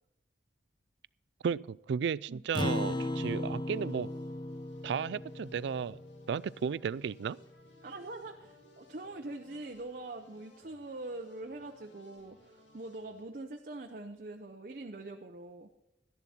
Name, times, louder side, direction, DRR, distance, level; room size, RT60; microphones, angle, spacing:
voice 1, 1.4-4.1 4.8-6.0 6.3-7.4, right 6 dB, 70° right, 22 dB, 0.3 m, -34 dB
Acoustic guitar, 2.5-7.2, left 1 dB, 25° left, 0.6 m, -37 dB
sound 1, 3.7-13.2, left 1 dB, 85° left, 3.6 m, -62 dB
voice 2, 7.8-15.7, right 2 dB, 50° right, 4 dB, 0.7 m, -43 dB
12.5 x 10.5 x 4.3 m, 0.92 s
head